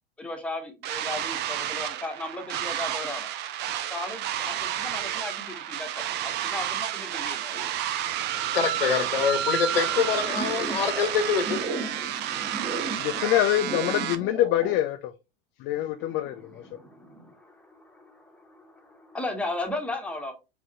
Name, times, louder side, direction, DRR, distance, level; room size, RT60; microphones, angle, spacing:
voice 1, 0.2-3.3 3.8-7.7 16.0-20.3, left 2 dB, 5° left, 1.0 m, -36 dB
sound 1, 0.8-14.1, right 11 dB, 35° right, 0.6 m, -31 dB
voice 2, 8.5-11.6 12.0-12.1, left 6 dB, 75° left, 1.1 m, -25 dB
sound 2, 9.7-14.8, right 3 dB, 20° right, 1.2 m, -36 dB
voice 3, 13.0-15.1 15.6-16.5, left 13 dB, 40° left, 0.5 m, -25 dB
4.8 x 3.5 x 3.0 m
figure-of-eight pair, 85°, 29 cm